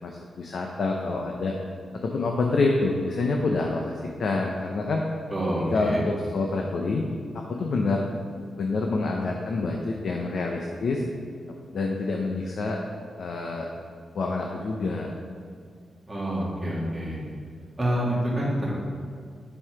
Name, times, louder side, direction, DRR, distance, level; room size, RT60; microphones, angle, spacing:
voice 1, 0.0-1.5 2.0-5.1 5.7-7.1 7.3-8.1 8.6-11.0 11.7-12.8 13.2-13.7 14.1-15.1, left 3 dB, 55° left, 1 dB, 0.7 m, -27 dB
voice 2, 5.3-6.1 16.1-17.2 17.8-18.7, equal, 10° right, -6 dB, 2.1 m, -27 dB
9.9 x 5.5 x 4.7 m, 2.1 s
wide cardioid pair, 155°, 0 cm